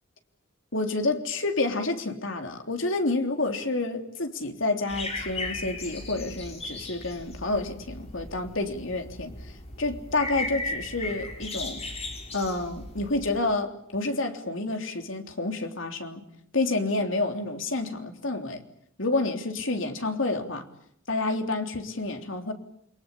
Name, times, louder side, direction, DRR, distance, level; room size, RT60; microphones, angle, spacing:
voice 1, 0.7-11.8 12.3-16.2 16.5-18.6 19.0-20.7 21.1-22.5, left 2 dB, 70° left, 3.5 m, -29 dB
sound 1, 4.9-13.4, left 2 dB, 30° left, 5.3 m, -37 dB
29.0 x 24.0 x 8.5 m
head